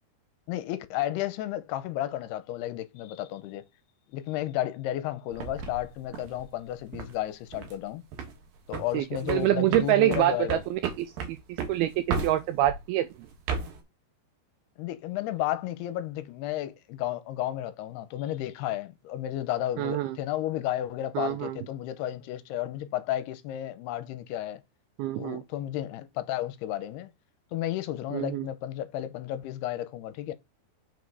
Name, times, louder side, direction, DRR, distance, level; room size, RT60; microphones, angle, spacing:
voice 1, 0.5-3.7 4.1-8.0 8.7-10.6 14.8-24.6 25.2-27.1 27.5-30.3, left 13 dB, 80° left, 2.6 m, -32 dB
sound 1, 5.3-7.2 7.5-7.8 8.1-8.4 8.7-12.8 13.3-13.8, right 5 dB, 65° right, 2.8 m, -34 dB
voice 2, 8.9-11.4 11.7-13.1 19.8-20.2 21.2-21.6 25.0-25.4 28.1-28.5, right 14 dB, 85° right, 2.2 m, -26 dB
6.3 x 5.1 x 4.7 m
omnidirectional pair, 4.8 m